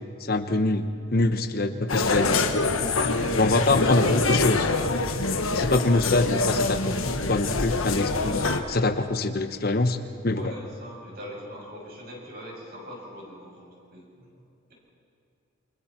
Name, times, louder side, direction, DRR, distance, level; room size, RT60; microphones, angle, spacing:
voice 1, 0.2-0.8 1.1-2.4 3.4-4.7 5.5-7.0 7.3-10.0 10.2-10.5, left 2 dB, 45° left, 9 dB, 0.9 m, -24 dB
sound 1, 1.9-8.6, left 3 dB, 90° left, 1.4 m, -25 dB
voice 2, 3.0-3.4 10.3-14.4, equal, 45° right, -3 dB, 7.2 m, -42 dB
28.5 x 25.0 x 4.5 m, 2.5 s
head